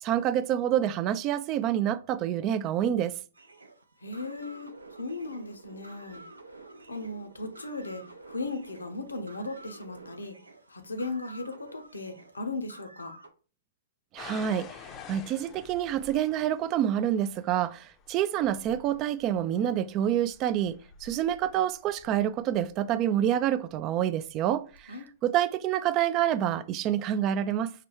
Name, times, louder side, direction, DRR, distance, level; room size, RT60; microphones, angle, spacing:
voice 1, 0.0-3.2 14.1-25.0 25.2-27.7, right 10 dB, 35° right, 0.3 m, -27 dB
sound 1, 3.3-13.3, right 2 dB, 85° right, 0.5 m, -49 dB
voice 2, 4.0-6.2 6.9-10.4 10.7-13.1 24.9-25.1, left 2 dB, 85° left, 0.7 m, -37 dB
sound 2, 14.2-23.0 23.7-24.1 24.7-24.8, left 6 dB, 30° left, 0.5 m, -50 dB
5.7 x 2.2 x 3.0 m
figure-of-eight pair, 110°, 0 cm